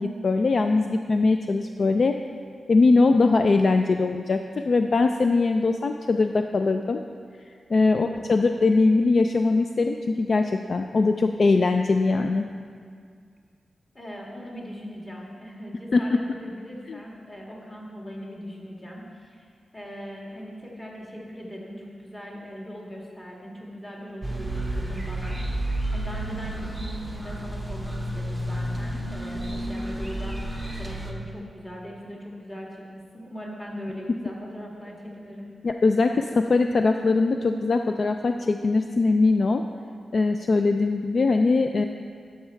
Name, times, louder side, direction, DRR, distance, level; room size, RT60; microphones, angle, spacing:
voice 1, 0.0-2.1 2.7-7.0 7.5-12.5 15.9-16.2 16.9-17.0 35.6-39.6 40.1-41.8, left 3 dB, 45° left, 6 dB, 0.3 m, -21 dB
voice 2, 7.8-8.2 13.9-19.5 19.7-30.5 30.8-35.5, equal, 15° left, -3 dB, 1.8 m, -40 dB
sound 1, 24.2-31.1, right 1 dB, 5° right, 0.9 m, -31 dB
11.5 x 6.5 x 4.4 m, 2.1 s
wide cardioid pair, 140°, 0 cm